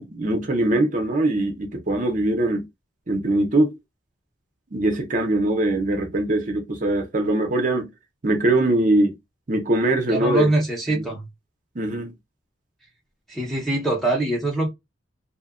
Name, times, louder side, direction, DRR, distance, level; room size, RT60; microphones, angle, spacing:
voice 1, 0.0-2.7 3.1-3.7 4.7-7.9 8.2-9.2 9.5-10.5 10.9-11.0 11.8-12.1, right 2 dB, 40° right, 0.6 m, -22 dB
voice 2, 10.1-11.3 13.3-14.7, right 2 dB, ahead, 0.6 m, -23 dB
2.7 x 2.2 x 2.3 m
head